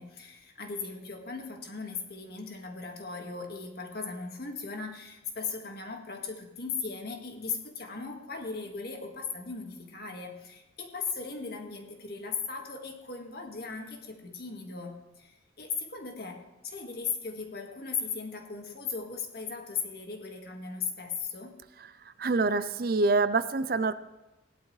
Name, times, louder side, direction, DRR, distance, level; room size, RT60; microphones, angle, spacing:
voice 1, 0.0-21.6, left 5 dB, 55° left, 3 dB, 1.9 m, -38 dB
voice 2, 22.2-23.9, right 3 dB, 50° right, 14 dB, 0.5 m, -26 dB
17.0 x 11.5 x 3.3 m, 1.0 s
head